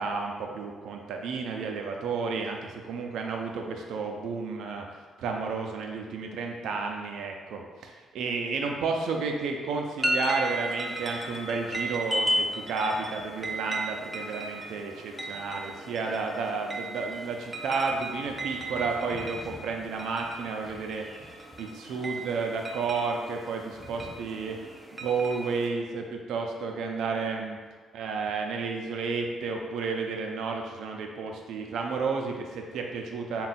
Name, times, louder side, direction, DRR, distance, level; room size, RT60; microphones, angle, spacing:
voice 1, 0.0-4.8 5.2-21.0 21.6-24.6 25.0-27.6 27.9-33.5, right 4 dB, 80° right, 2 dB, 0.5 m, -32 dB
sound 1, 10.0-25.7, right 1 dB, 20° right, 0.4 m, -35 dB
3.6 x 2.3 x 4.1 m, 1.4 s
cardioid pair, 90°, 0 cm